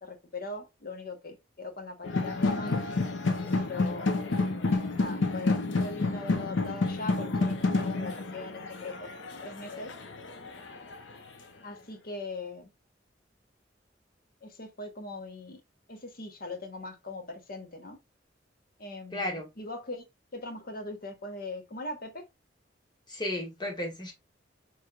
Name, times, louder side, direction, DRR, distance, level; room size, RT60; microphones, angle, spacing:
voice 1, 0.0-2.8 3.6-4.2 5.0-9.1 9.4-9.9 11.6-12.7 14.4-15.6 15.9-18.0 18.8-20.0 20.3-22.2, left 2 dB, 50° left, 1.0 m, -40 dB
sound 1, 2.0-10.9, left 3 dB, 85° left, 0.8 m, -29 dB
voice 2, 19.1-19.5 23.1-24.1, left 1 dB, 25° left, 1.3 m, -33 dB
4.6 x 3.2 x 2.4 m
head